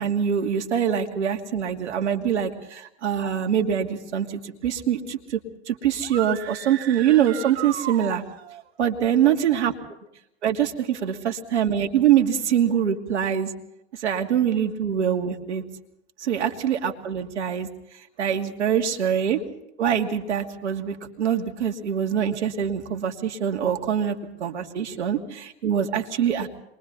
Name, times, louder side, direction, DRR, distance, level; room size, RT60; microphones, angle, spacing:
voice 1, 0.0-5.4 5.7-8.2 8.8-9.7 10.4-13.5 13.9-15.6 16.2-17.7 18.2-19.4 19.8-26.5, right 9 dB, 85° right, 3 dB, 2.6 m, -24 dB
sound 1, 6.0-8.6, right 12 dB, 65° right, 2.1 m, -35 dB
28.0 x 23.0 x 4.1 m, 0.82 s
hypercardioid pair, 125°, 33 cm